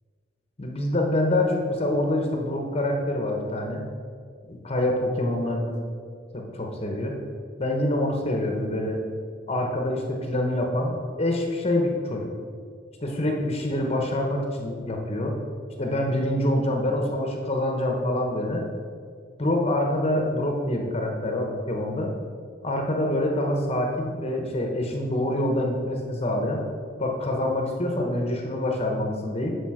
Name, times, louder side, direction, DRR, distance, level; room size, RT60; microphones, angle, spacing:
voice 1, 0.6-3.8 4.5-5.8 6.3-7.2 7.6-9.0 9.5-12.3 13.0-15.3 15.8-18.6 19.4-22.1 22.6-26.6 27.0-29.5, left 1 dB, 30° left, 1 dB, 1.1 m, -26 dB
12.0 x 5.0 x 5.0 m, 2.2 s
head